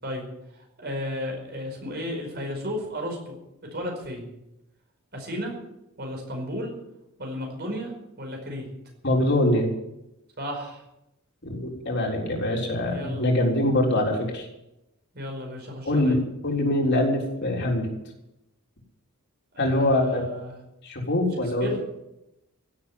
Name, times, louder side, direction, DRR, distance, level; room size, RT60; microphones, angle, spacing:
voice 1, 0.5-3.4 3.7-4.3 5.1-5.5 6.0-6.7 7.2-8.7 10.4-10.8 12.9-13.2 15.1-16.2 19.5-20.6 21.3-21.8, left 1 dB, 45° right, 1 dB, 5.1 m, -34 dB
voice 2, 9.0-9.7 11.4-14.5 15.9-17.9 19.6-20.2 20.8-21.7, left 1 dB, 50° left, 0 dB, 3.9 m, -24 dB
16.5 x 8.1 x 10.0 m, 0.89 s
head